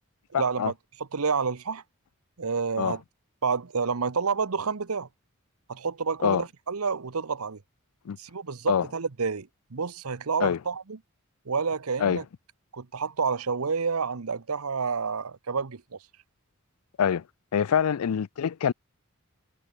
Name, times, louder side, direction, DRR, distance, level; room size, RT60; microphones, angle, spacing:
voice 1, 0.3-0.7 1.0-1.8 2.4-3.0 3.4-5.1 5.7-7.6 8.2-11.0 11.5-12.2 12.7-16.0, right 5 dB, 85° right, 0.9 m, -29 dB
voice 2, 17.5-18.7, left 7 dB, 90° left, 0.4 m, -24 dB
head